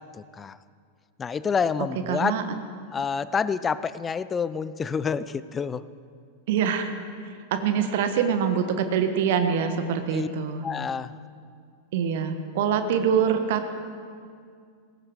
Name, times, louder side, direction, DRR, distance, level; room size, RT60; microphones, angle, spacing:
voice 1, 0.1-0.6 1.2-2.4 2.9-5.8 10.1-10.3 10.6-11.1, left 6 dB, 20° left, 16 dB, 0.5 m, -28 dB
voice 2, 2.1-2.4 6.5-6.9 7.5-10.6 11.9-13.7, right 7 dB, 55° right, 8 dB, 1.4 m, -24 dB
17.5 x 15.0 x 5.0 m, 2.2 s
figure-of-eight pair, 90°, 0 cm